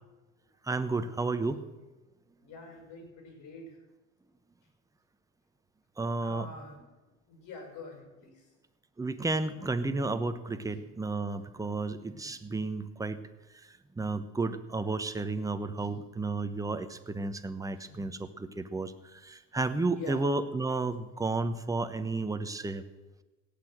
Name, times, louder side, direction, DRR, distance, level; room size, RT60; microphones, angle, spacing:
voice 1, 0.6-1.7 6.0-6.5 9.0-13.2 14.0-22.8, right 3 dB, 10° right, 9 dB, 1.0 m, -32 dB
voice 2, 2.4-3.8 6.2-6.8 7.3-8.5 17.8-17.9 19.9-20.2, left 2 dB, 50° left, 3 dB, 6.1 m, -45 dB
17.0 x 6.8 x 7.7 m, 1.1 s
supercardioid pair, 95°, 39 cm